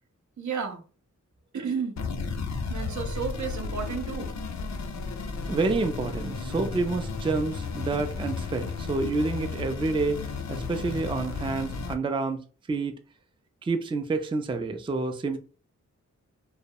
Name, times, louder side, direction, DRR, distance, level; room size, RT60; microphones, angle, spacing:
voice 1, 0.4-0.8 1.5-1.9 2.7-4.3, right 6 dB, 75° right, 0.6 m, -32 dB
sound 1, 2.0-11.9, left 4 dB, 65° left, 0.5 m, -33 dB
voice 2, 5.5-12.4 12.7-12.9 13.6-15.4, right 3 dB, 20° right, 0.3 m, -28 dB
2.2 x 2.0 x 2.7 m
cardioid pair, 50°, 30 cm